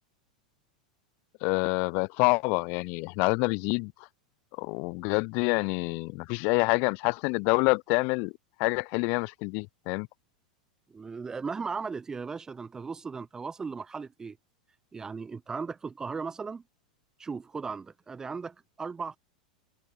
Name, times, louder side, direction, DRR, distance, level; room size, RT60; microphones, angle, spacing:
voice 1, 1.4-3.9 4.6-8.3 8.6-10.1, left 33 dB, 45° left, 0.6 m, -27 dB
voice 2, 10.9-14.4 14.9-16.6 17.2-19.2, right 5 dB, 15° right, 0.7 m, -37 dB
figure-of-eight pair, 85°, 4 cm